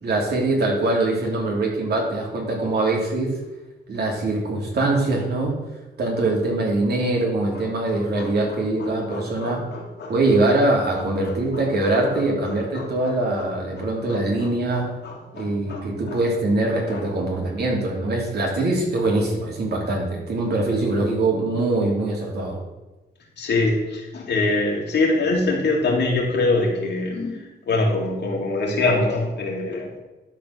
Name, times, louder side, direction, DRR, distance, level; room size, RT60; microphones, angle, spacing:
voice 1, 0.0-3.3 3.9-5.6 6.0-9.6 10.1-14.9 15.3-22.6, right 2 dB, 65° right, -1 dB, 2.9 m, -23 dB
voice 2, 7.9-8.3 8.8-10.1 11.5-11.9 12.7-12.8 13.8-13.9 15.0-16.2 16.9-17.0 23.4-27.4 27.7-30.0, left 2 dB, 70° left, -1 dB, 2.5 m, -24 dB
12.0 x 4.3 x 6.5 m, 1.1 s
cardioid pair, 100°, 18 cm